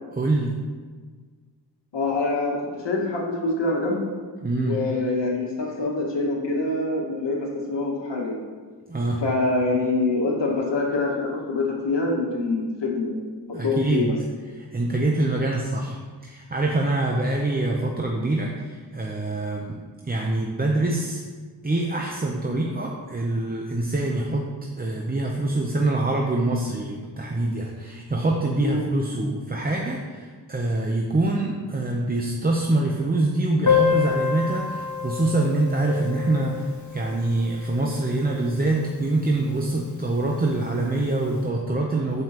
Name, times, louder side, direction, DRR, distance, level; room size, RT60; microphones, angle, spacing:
voice 1, 0.1-0.5 4.4-4.8 8.9-9.2 13.5-14.1 14.5-16.0 16.2-21.2 21.6-24.4 24.8-42.2, right 2 dB, 20° right, -1 dB, 0.7 m, -25 dB
voice 2, 1.9-4.0 4.6-8.3 9.2-13.4 13.6-14.1 28.6-28.9, left 2 dB, 90° left, -2 dB, 1.7 m, -25 dB
Piano, 33.7-39.0 39.3-39.4 39.6-39.7 40.1-40.2 40.9-41.1, left 7 dB, 45° left, 1.2 m, -27 dB
13.5 x 5.6 x 3.0 m, 1.5 s
wide cardioid pair, 95°, 42 cm